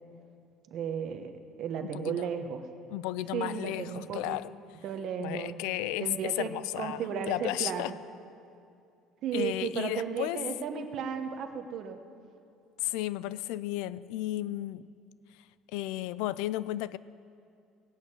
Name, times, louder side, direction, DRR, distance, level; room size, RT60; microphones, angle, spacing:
voice 1, 0.7-1.3 1.6-2.6 3.3-4.4 4.8-5.6 6.0-6.5 6.8-7.9 9.2-12.0, right 7 dB, 40° right, 1.0 m, -34 dB
voice 2, 1.9-2.3 2.9-4.5 5.2-7.9 9.3-10.5 12.8-14.9 15.7-17.0, left 15 dB, 75° left, 0.3 m, -33 dB
17.0 x 6.3 x 8.8 m
cardioid pair, 180°, 0 cm